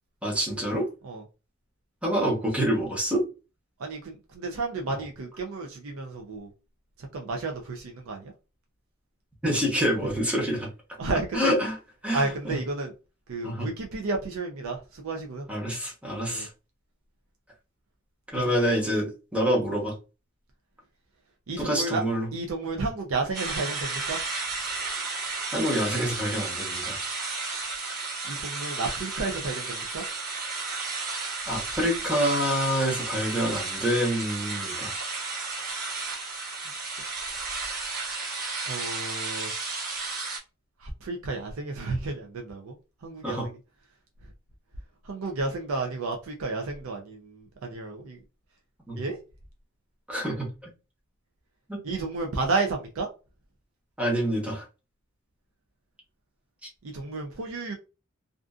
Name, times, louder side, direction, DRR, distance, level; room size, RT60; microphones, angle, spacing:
voice 1, 0.2-0.9 2.0-3.3 9.4-10.7 11.3-11.8 12.0-12.6 13.4-13.7 15.5-16.5 18.3-19.9 21.6-22.3 25.5-27.0 31.5-34.9 43.2-43.5 48.9-49.0 50.1-50.5 51.7-51.8 54.0-54.6, equal, 5° right, 0.8 m, -27 dB
voice 2, 3.8-6.5 7.0-8.3 11.0-11.5 12.1-12.9 13.3-15.4 16.3-16.5 18.3-18.6 21.5-22.0 22.3-24.2 28.2-30.0 38.6-39.5 40.8-42.7 43.0-43.5 45.0-48.2 49.0-49.2 51.8-53.1 56.8-57.7, right 3 dB, 80° right, 0.5 m, -32 dB
sound 1, 23.3-40.4, right 3 dB, 45° right, 1.1 m, -33 dB
2.5 x 2.4 x 2.3 m
head